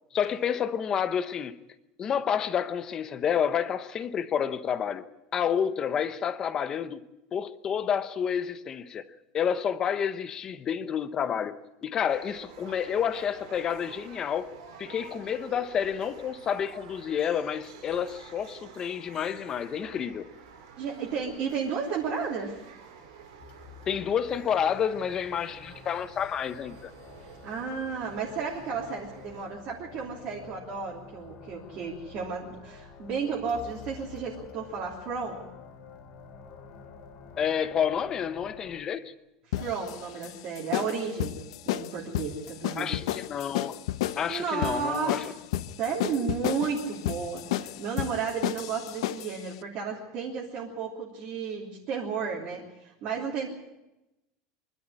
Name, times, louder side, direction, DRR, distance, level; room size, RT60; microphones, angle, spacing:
voice 1, 0.1-1.6 2.0-5.1 5.3-7.0 7.3-9.0 9.3-14.5 14.8-20.3 23.9-26.9 37.4-39.0 42.8-43.8 44.2-45.2, left 8 dB, 20° left, 0.9 m, -29 dB
sound 1, 12.1-29.5, right 6 dB, 75° right, 5.0 m, -50 dB
voice 2, 20.8-22.6 27.4-35.5 39.5-43.0 44.3-45.3 45.8-53.5, right 5 dB, 35° right, 3.2 m, -33 dB
sound 2, 23.4-38.8, left 6 dB, 35° left, 3.4 m, -49 dB
sound 3, 39.5-49.4, left 13 dB, 80° left, 0.9 m, -32 dB
24.5 x 12.0 x 9.7 m
supercardioid pair, 180°, 3 cm